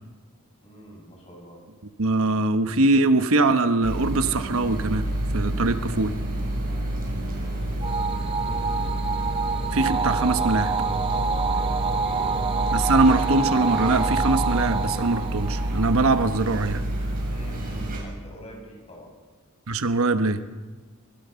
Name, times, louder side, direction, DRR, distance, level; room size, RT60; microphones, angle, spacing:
voice 1, 0.6-1.6 7.9-8.9 11.2-12.6 17.3-19.1, equal, 30° left, 0 dB, 7.7 m, -45 dB
voice 2, 2.0-5.0 5.3-6.1 9.7-10.7 12.7-16.8 19.7-20.4, right 2 dB, 65° right, 10 dB, 1.1 m, -22 dB
sound 1, 3.8-18.0, right 1 dB, 40° right, 7.2 m, -29 dB
sound 2, 7.8-16.4, right 5 dB, 25° right, 1.2 m, -27 dB
24.5 x 22.0 x 7.0 m, 1.3 s
head